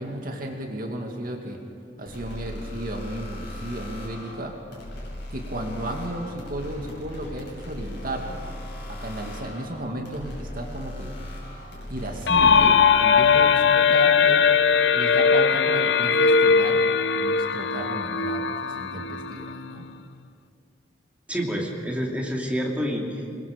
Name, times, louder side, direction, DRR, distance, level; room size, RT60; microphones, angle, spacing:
voice 1, 0.0-1.6 2.0-4.6 5.3-8.4 8.9-11.1 11.9-14.5 14.9-16.8 17.1-19.9, right 1 dB, 55° right, 2 dB, 2.2 m, -34 dB
sound 1, 2.1-12.7, left 1 dB, 70° left, 6.6 m, -38 dB
sound 2, 12.3-19.9, left 6 dB, 90° left, 0.7 m, -20 dB
voice 2, 21.3-23.4, equal, 10° right, -2 dB, 2.8 m, -28 dB
27.0 x 22.0 x 5.2 m, 2.3 s
head